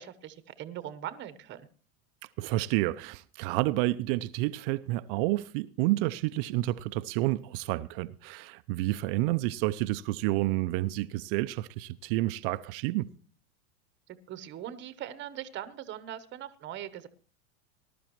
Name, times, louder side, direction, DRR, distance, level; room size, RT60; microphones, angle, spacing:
voice 1, 0.0-1.6 14.1-17.1, right 11 dB, 25° right, 0.9 m, -41 dB
voice 2, 2.4-13.1, right 18 dB, 40° right, 0.5 m, -29 dB
20.0 x 12.0 x 3.0 m
hypercardioid pair, 115°, 42 cm